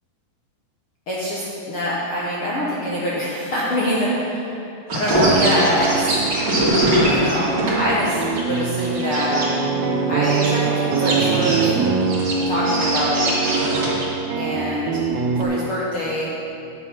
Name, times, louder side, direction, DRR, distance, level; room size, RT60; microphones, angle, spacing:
voice 1, 1.1-4.5 4.9-6.2 6.9-9.4 10.1-11.7 12.4-13.4 14.4-15.0 15.4-16.3, equal, 80° left, -7 dB, 1.2 m, -24 dB
sound 1, 4.9-9.5 10.2-10.5 10.9-14.0, right 1 dB, 35° right, 2.4 m, -22 dB
sound 2, 5.0-15.4, right 5 dB, 80° right, 2.4 m, -24 dB
9.6 x 8.3 x 5.7 m, 2.7 s
omnidirectional pair, 4.4 m